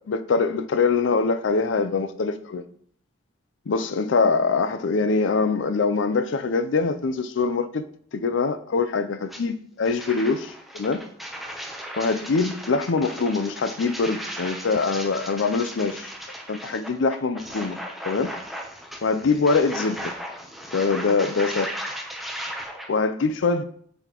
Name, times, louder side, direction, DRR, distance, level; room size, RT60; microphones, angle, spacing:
voice 1, 0.1-2.6 3.7-7.8 8.1-11.0 12.0-16.1 16.5-17.8 18.0-18.3 19.0-20.1 20.7-21.7 22.9-23.6, left 4 dB, 70° left, 0.5 m, -23 dB
sound 1, 9.3-9.4 9.8-22.9, equal, ahead, 0.7 m, -36 dB
7.9 x 4.2 x 2.9 m
head